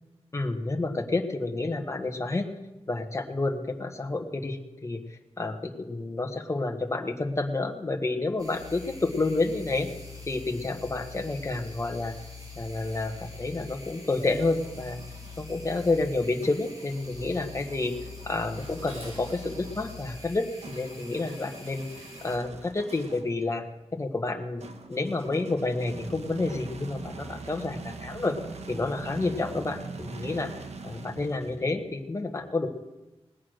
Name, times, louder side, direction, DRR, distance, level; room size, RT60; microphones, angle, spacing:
voice 1, 0.3-2.5 2.9-9.9 10.3-12.1 12.6-15.0 15.4-17.9 18.2-23.6 23.9-24.6 24.9-27.8 28.0-28.3 28.7-30.5 30.8-32.7, left 2 dB, 25° left, 4 dB, 1.4 m, -29 dB
sound 1, 8.4-22.4, left 4 dB, 35° right, 4.2 m, -44 dB
sound 2, 13.9-15.5 16.4-23.4 24.6-31.9, right 3 dB, 90° right, 1.3 m, -43 dB
Dishes pots and pans, 18.6-23.3, equal, 70° right, 7.2 m, -51 dB
19.0 x 8.6 x 6.4 m, 1.0 s
wide cardioid pair, 125°, 11 cm